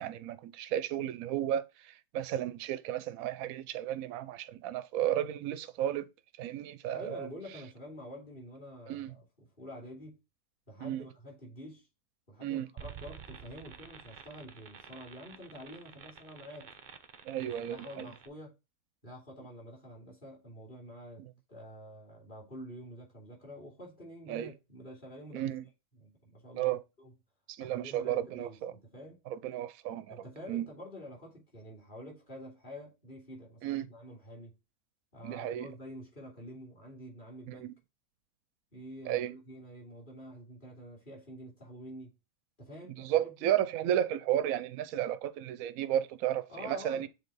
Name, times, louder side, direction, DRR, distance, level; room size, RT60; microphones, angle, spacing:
voice 1, 0.0-6.0 6.4-7.3 8.9-9.1 10.8-11.0 12.4-12.7 17.2-17.8 24.3-24.5 25.3-25.6 26.5-26.8 27.5-28.7 29.3-30.2 30.5-30.6 33.6-33.9 35.2-35.7 37.5-37.7 39.1-39.3 43.0-47.1, right 11 dB, 70° right, 1.0 m, -33 dB
voice 2, 6.9-10.2 10.7-11.9 12.3-16.7 17.4-18.5 19.0-25.5 25.9-27.1 27.6-29.2 30.1-34.6 35.1-37.7 38.7-42.1 42.6-43.6 46.5-47.1, equal, 30° left, 2.9 m, -48 dB
sound 1, 12.8-18.3, right 7 dB, 50° right, 0.5 m, -50 dB
6.7 x 3.9 x 4.1 m
omnidirectional pair, 1.7 m